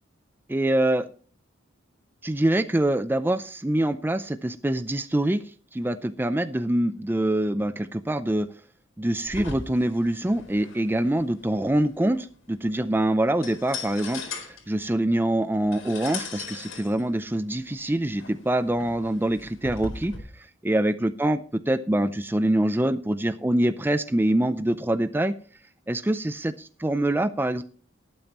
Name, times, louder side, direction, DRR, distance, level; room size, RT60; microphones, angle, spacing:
voice 1, 0.5-1.1 2.2-5.4 5.7-8.5 9.0-21.4 21.7-25.3 25.9-26.5 26.8-27.6, right 1 dB, 10° right, 11 dB, 0.5 m, -25 dB
sound 1, 9.3-20.2, left 4 dB, 85° left, 4.2 m, -40 dB
19.5 x 8.7 x 3.0 m, 0.42 s
head